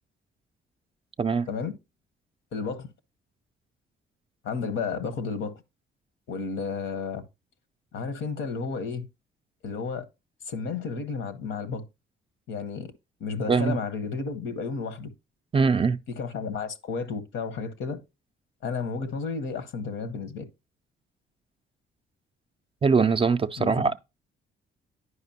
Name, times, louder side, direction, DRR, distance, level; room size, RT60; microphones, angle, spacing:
voice 1, 2.5-2.9 4.4-5.6 6.3-7.2 7.9-9.1 9.6-10.0 10.4-11.8 12.5-12.9 13.2-15.1 16.1-18.0 18.6-20.4 23.6-23.9, left 5 dB, 75° left, 1.0 m, -32 dB
voice 2, 15.5-16.0 22.8-24.0, right 5 dB, 30° right, 0.4 m, -22 dB
9.7 x 5.0 x 2.8 m
cardioid pair, 90°, 20 cm